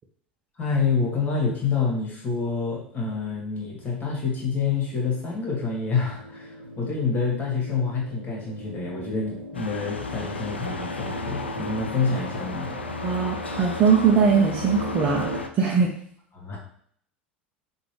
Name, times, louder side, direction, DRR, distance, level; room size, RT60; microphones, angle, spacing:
voice 1, 0.6-12.7 16.3-16.6, left 5 dB, 30° left, -2 dB, 2.0 m, -27 dB
sound 1, 2.3-15.4, right 1 dB, 70° right, 0.8 m, -39 dB
sound 2, 9.5-15.5, left 4 dB, 80° left, 0.4 m, -34 dB
voice 2, 13.0-15.3 15.6-15.9, right 6 dB, 30° right, -2 dB, 0.8 m, -20 dB
6.0 x 2.7 x 3.3 m, 0.62 s
figure-of-eight pair, 75°, 6 cm